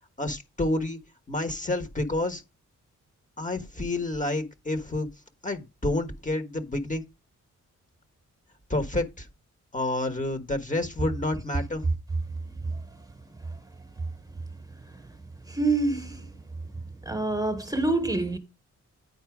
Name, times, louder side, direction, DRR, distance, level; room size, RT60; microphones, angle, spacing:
voice 1, 0.2-1.0 1.3-2.4 3.4-5.1 5.4-7.0 8.7-9.3 9.7-11.8, left 2 dB, 25° left, 1.3 m, -29 dB
voice 2, 12.6-13.1 13.4-13.6 14.0-14.1 14.8-15.1 15.4-16.3 17.0-18.4, right 2 dB, 10° right, 1.2 m, -28 dB
9.5 x 4.3 x 4.8 m
cardioid pair, 100°, 30 cm